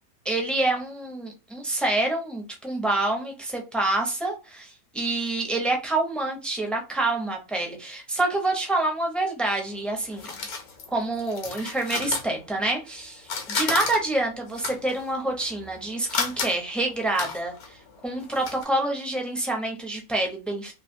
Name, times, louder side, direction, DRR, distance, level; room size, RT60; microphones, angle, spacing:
voice 1, 0.2-10.3 10.9-13.2 13.5-17.8 18.0-20.7, right 2 dB, ahead, 1 dB, 0.4 m, -27 dB
sound 1, 9.5-12.9 13.2-18.6, left 5 dB, 80° left, 1.3 m, -33 dB
3.2 x 2.6 x 2.6 m, 0.30 s
omnidirectional pair, 1.6 m